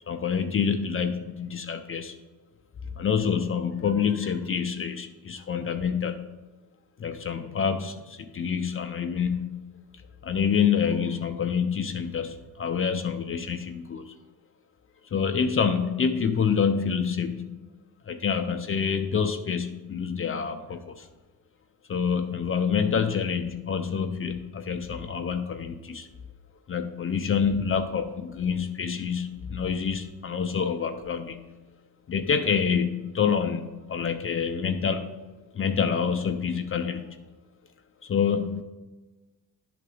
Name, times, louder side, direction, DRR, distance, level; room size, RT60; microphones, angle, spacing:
voice 1, 0.1-2.2 2.9-6.2 7.0-9.6 10.2-14.1 15.1-17.6 18.1-21.1 21.9-26.1 26.7-31.4 32.1-35.1 35.5-37.2 38.0-38.6, left 6 dB, 30° left, 6 dB, 0.5 m, -27 dB
10.5 x 3.9 x 4.9 m, 1.2 s
cardioid pair, 105°, 44 cm